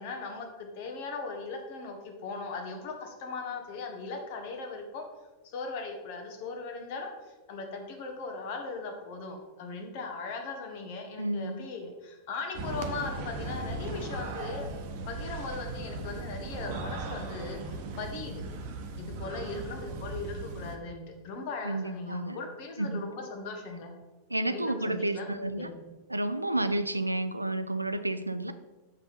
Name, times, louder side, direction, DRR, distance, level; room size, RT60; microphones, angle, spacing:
voice 1, 0.0-5.0 5.5-7.1 7.5-14.7 15.1-18.4 19.0-23.9 24.5-25.9, left 4 dB, 50° left, 4 dB, 1.3 m, -38 dB
voice 2, 11.2-11.6 21.6-22.4 22.8-23.1 24.3-25.7 26.1-28.5, right 2 dB, 85° right, 12 dB, 0.4 m, -31 dB
sound 1, 12.5-20.8, right 3 dB, 45° right, 0.9 m, -38 dB
6.9 x 5.6 x 4.2 m, 1.1 s
figure-of-eight pair, 90°, 0 cm